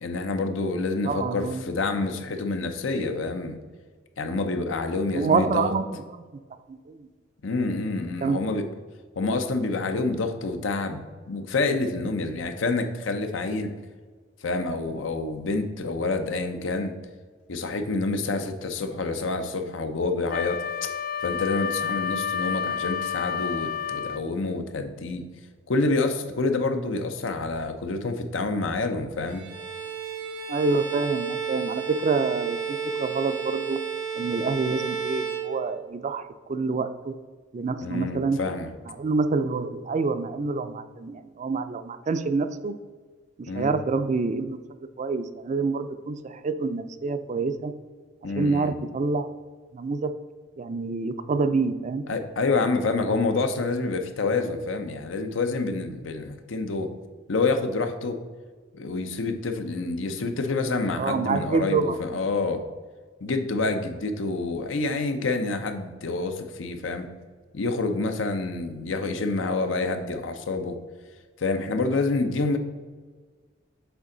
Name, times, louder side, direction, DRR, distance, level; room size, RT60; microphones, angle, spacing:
voice 1, 0.0-3.6 4.2-5.7 7.4-8.7 9.2-13.7 14.4-16.9 17.5-20.9 21.2-25.2 25.7-29.5 37.8-38.7 43.5-43.7 48.2-48.7 52.1-56.9 57.3-58.2 58.7-62.6 63.2-67.1 67.5-70.8 71.4-72.6, left 3 dB, 85° left, 7 dB, 0.7 m, -27 dB
voice 2, 1.0-1.7 5.1-6.2 6.7-7.1 8.2-8.4 30.5-33.8 34.1-36.2 36.5-37.1 37.5-38.4 38.9-42.7 43.4-44.6 45.0-47.7 48.4-49.3 49.7-50.1 50.6-52.0 61.0-62.0, right 4 dB, 40° right, 10 dB, 0.4 m, -27 dB
Wind instrument woodwind instrument, 20.3-24.3, left 7 dB, 50° left, 0.3 m, -30 dB
Bowed string instrument, 29.3-36.1, right 7 dB, 85° right, 1.3 m, -32 dB
7.0 x 4.4 x 3.8 m, 1.5 s
head